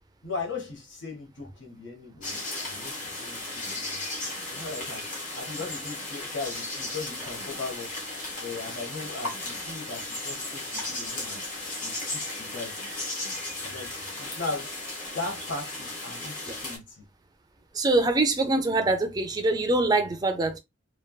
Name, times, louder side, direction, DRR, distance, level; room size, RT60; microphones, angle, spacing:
voice 1, 0.2-3.4 3.8-4.0 4.4-5.1 5.3-7.9 8.4-11.4 11.8-13.1 13.6-14.7 15.1-17.0, left 3 dB, 70° left, 1.1 m, -38 dB
sound 1, 2.2-16.8, left 2 dB, 40° left, 1.2 m, -35 dB
voice 2, 17.7-20.6, right 2 dB, 20° right, 0.4 m, -24 dB
3.2 x 2.3 x 2.2 m
head